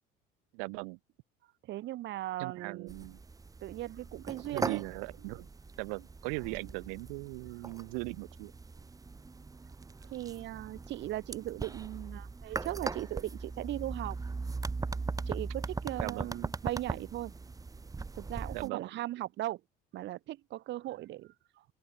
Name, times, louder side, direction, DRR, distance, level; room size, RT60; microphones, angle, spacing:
voice 1, 0.5-1.0 2.4-3.2 4.5-5.5 5.8-8.5 16.0-16.4 18.5-18.9, right 40 dB or more, 85° right, 0.9 m, -39 dB
voice 2, 1.7-2.9 3.6-4.8 6.5-6.6 10.1-14.2 15.3-17.3 18.1-19.6 19.9-21.6, right 15 dB, 60° right, 1.1 m, -38 dB
sound 1, 2.9-18.7, right 4 dB, 15° right, 1.1 m, -40 dB
open air
supercardioid pair, 100°, 21 cm